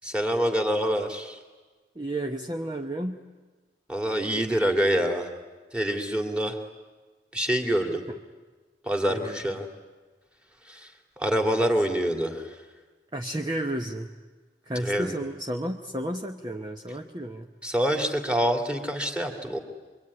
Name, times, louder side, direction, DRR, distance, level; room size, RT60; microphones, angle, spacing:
voice 1, 0.0-1.4 3.9-5.3 5.7-6.6 7.3-8.0 8.8-9.7 10.7-12.6 14.7-15.2 17.6-19.6, equal, 5° right, 5 dB, 2.3 m, -26 dB
voice 2, 1.9-3.2 9.1-9.4 13.1-14.1 14.7-17.5, right 1 dB, 25° right, 3 dB, 1.0 m, -32 dB
26.5 x 23.0 x 9.6 m, 1.3 s
head